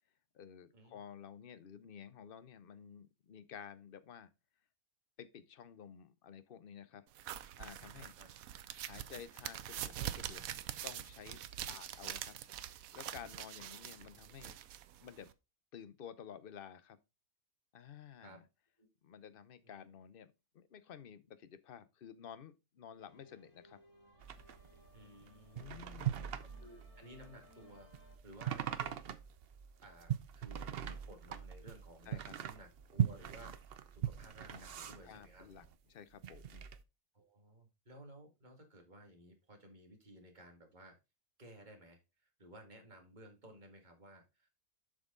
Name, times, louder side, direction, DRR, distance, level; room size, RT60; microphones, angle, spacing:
voice 1, 0.3-4.3 5.2-7.0 7.6-8.1 8.8-10.5 10.8-11.4 11.7-12.4 12.9-14.6 15.0-15.3 15.7-17.0 17.7-18.5 19.0-23.8 25.5-26.4 32.1-32.4 34.5-34.7 35.0-36.6, left 8 dB, 45° left, 0.8 m, -52 dB
sound 1, 7.2-15.3, right 11 dB, 70° right, 1.1 m, -45 dB
voice 2, 8.0-8.3 13.6-13.7 18.2-18.4 18.8-18.9 19.6-19.8 24.9-26.3 26.6-29.0 29.8-35.5 37.1-41.0 41.4-44.5, right 1 dB, 30° right, 2.2 m, -57 dB
sound 2, 23.0-28.2, left 1 dB, 80° left, 3.7 m, -63 dB
sound 3, 24.2-35.7 36.1-36.8, right 10 dB, 55° right, 0.7 m, -41 dB
7.6 x 6.2 x 3.8 m
omnidirectional pair, 1.5 m